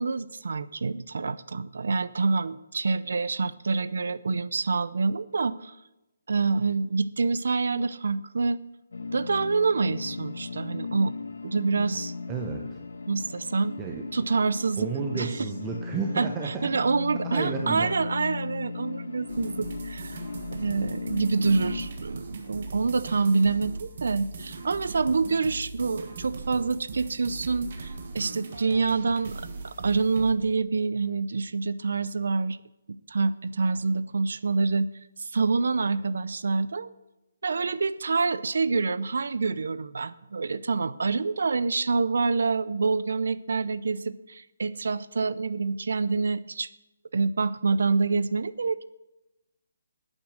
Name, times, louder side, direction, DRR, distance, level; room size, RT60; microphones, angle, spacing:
voice 1, 0.0-5.7 6.3-8.6 9.1-11.1 11.4-12.1 13.1-13.7 14.1-14.9 15.1-15.3 16.2-29.3 29.6-32.6 33.1-34.9 35.2-36.9 37.4-46.7 47.1-48.8, right 4 dB, 70° right, 17 dB, 0.5 m, -27 dB
sound 1, 8.9-21.9, left 4 dB, 85° left, 1.3 m, -36 dB
voice 2, 12.3-12.8 13.8-14.0 14.8-16.7 17.2-17.9, right 5 dB, 15° right, 1 dB, 0.9 m, -32 dB
sound 2, 19.3-30.3, right 3 dB, 50° right, 1.6 m, -39 dB
10.0 x 8.9 x 6.2 m, 0.96 s
hypercardioid pair, 160°, 0 cm